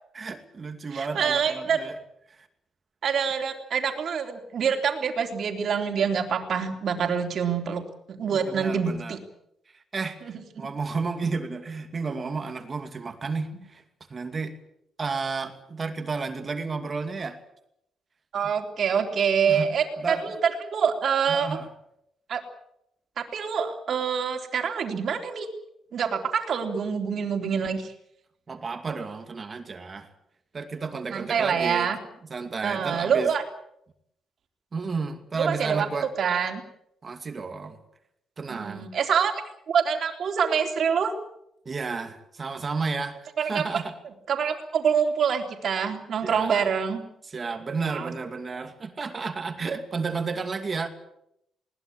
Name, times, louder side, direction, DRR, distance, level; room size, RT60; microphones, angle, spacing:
voice 1, 0.1-2.0 2.3-2.4 8.3-9.2 9.7-13.8 14.1-14.6 15.0-17.4 19.5-19.7 20.0-20.3 21.3-21.7 28.5-30.1 30.5-31.9 32.3-33.3 34.7-36.1 37.0-37.8 38.4-38.9 41.7-44.0 46.2-46.7 47.3-50.9, right 4 dB, 30° right, 7 dB, 2.5 m, -32 dB
voice 2, 0.9-1.8 3.0-7.8 8.1-9.2 10.3-10.7 18.3-21.6 22.3-22.4 23.2-25.5 25.9-27.9 31.1-32.0 32.6-33.4 35.3-35.9 36.2-36.6 38.5-39.3 39.7-41.1 43.4-43.8 44.3-47.0 47.9-48.1, right 7 dB, 55° right, 5 dB, 3.6 m, -26 dB
21.5 x 19.5 x 8.8 m, 0.78 s
cardioid pair, 140°, 0 cm